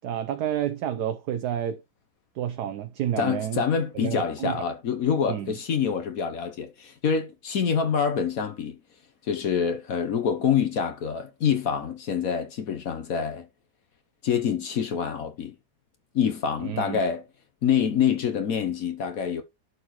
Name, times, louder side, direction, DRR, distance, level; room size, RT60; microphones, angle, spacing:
voice 1, 0.0-1.8 2.4-3.6 3.9-4.6 5.3-5.5 16.6-17.0, right 10 dB, 70° right, 1.3 m, -29 dB
voice 2, 3.2-8.8 9.2-13.5 14.2-15.5 16.1-17.2 17.6-19.4, left 7 dB, 60° left, 1.2 m, -26 dB
11.0 x 6.6 x 3.1 m
omnidirectional pair, 1.9 m